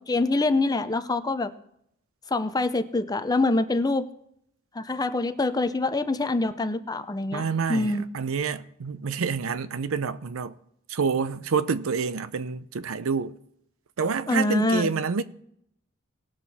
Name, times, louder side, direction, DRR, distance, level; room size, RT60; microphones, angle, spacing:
voice 1, 0.1-1.5 2.3-4.1 4.8-7.4 7.7-8.1 14.3-14.9, left 2 dB, 20° left, 0.5 m, -25 dB
voice 2, 7.3-10.5 10.9-13.4 14.0-15.2, right 5 dB, 80° right, 0.6 m, -28 dB
18.5 x 6.4 x 4.2 m
head